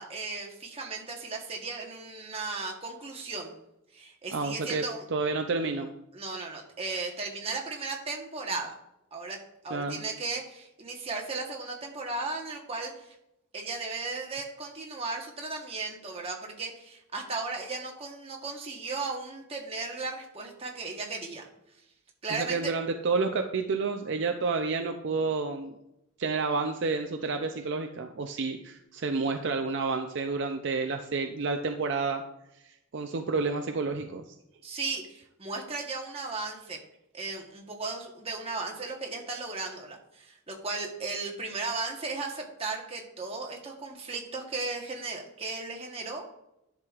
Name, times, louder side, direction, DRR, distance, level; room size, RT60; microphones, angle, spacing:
voice 1, 0.0-3.5 3.9-5.0 6.1-8.7 9.1-9.4 9.6-13.1 13.5-21.5 22.2-22.7 34.6-36.8 37.1-46.3, right 3 dB, 30° right, 0 dB, 1.2 m, -36 dB
voice 2, 4.3-4.8 5.1-5.9 9.7-10.0 22.3-25.8 26.2-32.2 32.9-34.3, right 4 dB, 60° right, 5 dB, 0.5 m, -30 dB
10.5 x 6.2 x 2.4 m, 0.82 s
head